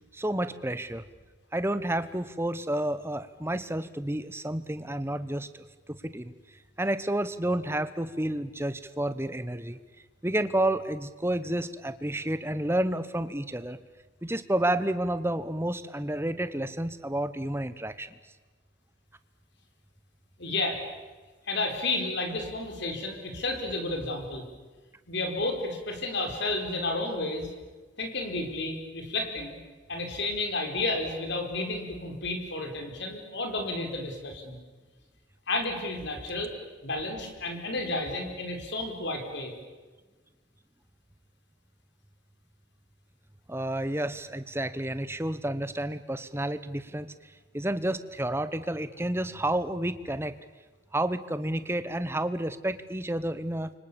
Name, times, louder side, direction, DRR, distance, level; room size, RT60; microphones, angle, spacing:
voice 1, 0.1-1.0 1.5-6.3 6.8-9.8 10.2-13.8 14.2-18.1 43.5-50.3 50.9-53.7, right 1 dB, 10° right, 12 dB, 1.0 m, -30 dB
voice 2, 20.4-20.8 21.5-24.4 25.1-27.5 28.0-29.6 29.9-34.6 35.5-36.5 36.8-39.5, left 2 dB, 55° left, 4 dB, 4.7 m, -31 dB
29.5 x 25.5 x 7.0 m, 1.3 s
head